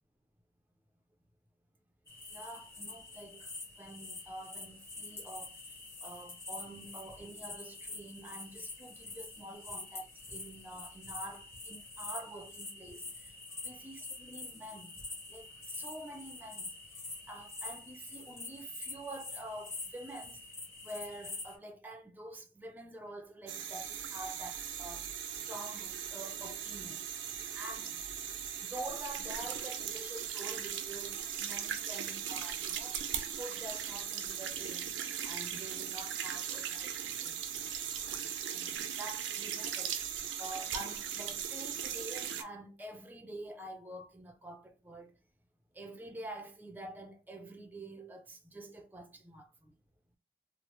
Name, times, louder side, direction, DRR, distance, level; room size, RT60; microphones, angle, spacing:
sound 1, 2.1-21.6, left 3 dB, 15° left, 0.8 m, -46 dB
voice 1, 2.3-5.6 6.0-13.4 13.6-15.0 15.3-20.4 20.8-27.0 27.5-27.9 28.6-33.0 33.4-37.4 38.5-45.2 45.7-49.7, right 1 dB, 10° right, 0.4 m, -47 dB
sound 2, 23.5-42.4, right 9 dB, 90° right, 0.5 m, -39 dB
3.0 x 2.0 x 2.9 m
head